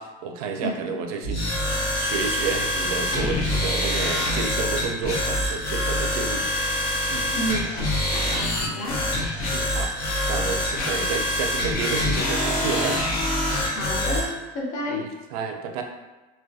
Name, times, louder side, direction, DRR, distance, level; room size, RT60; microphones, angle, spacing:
voice 1, 0.0-6.5 7.1-7.3 9.2-13.0 14.9-15.8, right 5 dB, 80° right, 4 dB, 0.4 m, -31 dB
sound 1, 1.2-14.3, left 1 dB, 75° left, 0.7 m, -25 dB
voice 2, 7.3-7.7 8.1-9.0 13.7-15.1, equal, 40° left, -3 dB, 0.6 m, -30 dB
2.3 x 2.2 x 2.6 m, 1.2 s
cardioid pair, 175°, 19 cm